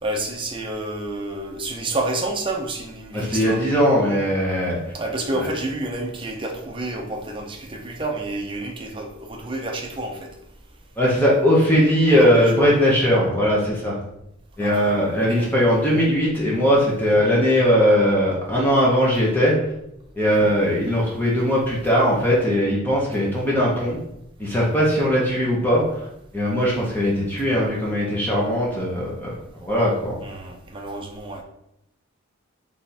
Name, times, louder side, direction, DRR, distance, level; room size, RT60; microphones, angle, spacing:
voice 1, 0.0-3.6 4.9-10.3 12.1-12.7 14.6-14.9 15.2-15.5 20.3-20.5 30.2-31.4, right 2 dB, 25° right, 1 dB, 0.6 m, -29 dB
voice 2, 3.1-4.8 5.4-5.5 11.0-13.9 14.6-19.5 20.2-24.0 24.4-26.1 26.3-30.2, equal, 10° left, -5 dB, 0.9 m, -19 dB
3.5 x 3.4 x 4.2 m, 0.80 s
head